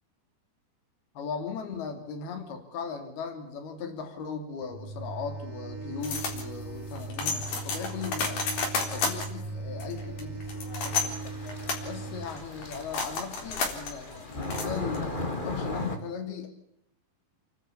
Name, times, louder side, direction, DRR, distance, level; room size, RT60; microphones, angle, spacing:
voice 1, 1.1-8.5 8.9-11.4 11.8-16.5, left 6 dB, 80° left, 6 dB, 4.9 m, -38 dB
sound 1, 4.7-12.3, right 3 dB, 5° right, 3.9 m, -39 dB
sound 2, 6.0-15.2, left 4 dB, 60° left, 5.6 m, -33 dB
sound 3, 11.0-16.0, left 2 dB, 15° left, 1.8 m, -37 dB
30.0 x 12.5 x 8.5 m, 0.78 s
omnidirectional pair, 4.5 m